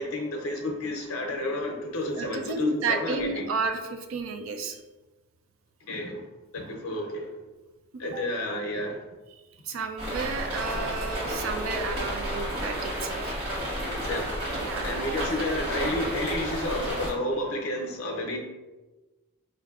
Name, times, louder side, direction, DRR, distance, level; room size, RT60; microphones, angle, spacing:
voice 1, 0.0-3.5 5.9-6.2 6.5-7.3 8.0-9.0 13.9-14.3 14.8-18.4, left 1 dB, 80° left, 1 dB, 0.5 m, -31 dB
voice 2, 2.1-4.8 8.1-8.2 9.6-13.4 14.5-15.2, right 4 dB, 65° right, 5 dB, 0.4 m, -32 dB
sound 1, 10.0-17.1, equal, 25° right, 1.3 m, -31 dB
4.5 x 2.5 x 2.3 m, 1.2 s
head